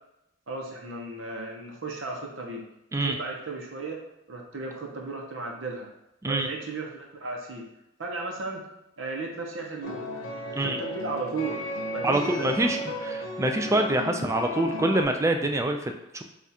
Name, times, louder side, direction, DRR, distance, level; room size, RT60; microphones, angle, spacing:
voice 1, 0.5-2.7 3.0-4.0 4.3-5.9 6.3-7.7 8.0-8.7 9.0-10.1 10.6-11.6 11.9-12.9, right 3 dB, 75° right, 0 dB, 0.8 m, -35 dB
sound 1, 9.8-15.0, left 1 dB, 90° left, 0.6 m, -35 dB
voice 2, 12.0-16.2, right 1 dB, 15° right, 5 dB, 0.3 m, -26 dB
3.5 x 2.4 x 4.2 m, 0.87 s
head